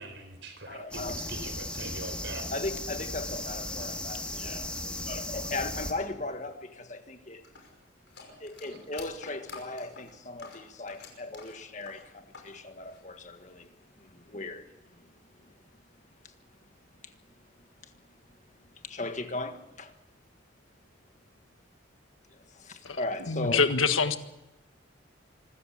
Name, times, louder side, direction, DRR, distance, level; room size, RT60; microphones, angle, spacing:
voice 1, 0.0-1.0 1.3-2.5 8.7-8.8, right 2 dB, 65° right, 4.2 m, -42 dB
voice 2, 0.7-1.4 2.5-7.5 8.4-15.6 16.2-16.3 17.0-17.4 17.8-18.0 18.3-18.4 18.7-19.9 22.3-23.7, left 2 dB, 40° left, 1.6 m, -38 dB
sound 1, 0.9-5.9, left 1 dB, 5° left, 1.8 m, -36 dB
sound 2, 7.4-12.5 12.8-13.7, left 5 dB, 60° left, 5.4 m, -48 dB
voice 3, 23.3-24.2, left 5 dB, 90° left, 1.6 m, -25 dB
25.5 x 14.0 x 8.6 m
head